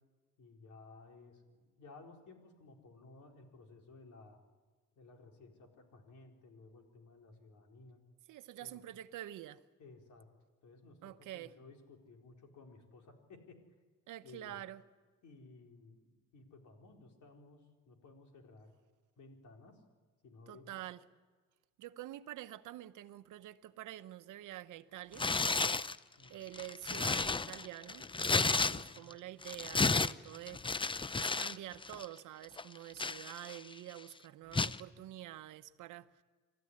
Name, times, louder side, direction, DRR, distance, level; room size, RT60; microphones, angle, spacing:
voice 1, 0.4-4.4 5.0-8.0 8.6-8.8 9.8-10.3 10.6-13.6 14.2-14.6 15.2-18.7 19.2-19.8 20.2-20.8 26.2-26.4 28.4-29.2, left 3 dB, 75° left, 4.4 m, -57 dB
voice 2, 8.3-9.6 11.0-11.5 14.1-14.8 20.5-21.0 21.8-25.3 26.3-30.6 31.1-36.1, right 14 dB, 85° right, 1.0 m, -47 dB
Tearing, 25.1-26.0 26.5-29.1 29.4-31.6 31.8-32.1 32.6-33.7 34.5-34.8, left 3 dB, 15° left, 0.6 m, -32 dB
27.0 x 14.0 x 9.8 m
cardioid pair, 90°, 30 cm